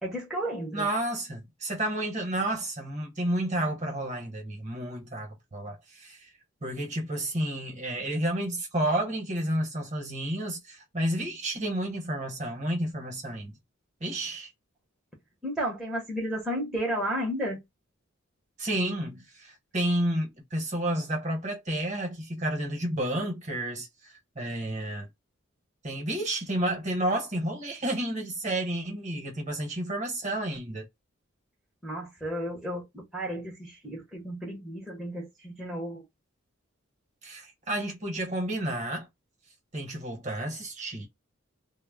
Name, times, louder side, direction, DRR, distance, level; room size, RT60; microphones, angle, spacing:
voice 1, 0.0-0.9 15.4-17.6 31.8-36.0, equal, 5° right, 0.7 m, -33 dB
voice 2, 0.7-6.3 6.6-13.6 14.0-14.5 18.6-25.1 25.8-30.8 37.2-39.1 39.7-41.1, right 1 dB, 35° right, 0.9 m, -31 dB
2.1 x 2.0 x 3.5 m
head